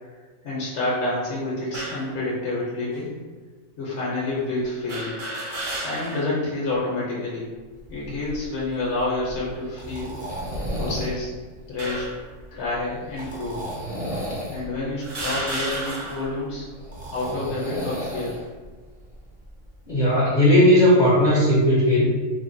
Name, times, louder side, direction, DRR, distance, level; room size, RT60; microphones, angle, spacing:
voice 1, 0.4-3.1 3.8-5.1 5.8-7.5 7.9-10.2 10.7-11.3 11.7-12.1 12.5-13.6 14.5-16.7 17.1-18.4, left 2 dB, 65° left, -6 dB, 1.0 m, -28 dB
sound 1, 1.7-2.1 3.0-3.1 4.9-6.4 6.8-6.9 8.0-8.5 9.1-9.4 10.4-11.2 11.8-12.3 13.2-13.3 14.2-14.3 15.0-16.3, right 1 dB, 50° right, 0.7 m, -32 dB
sound 2, 7.8-19.9, equal, 10° right, 0.3 m, -35 dB
voice 2, 19.9-22.0, left 1 dB, 45° left, -8 dB, 0.6 m, -17 dB
3.1 x 2.1 x 2.5 m, 1.4 s
omnidirectional pair, 1.3 m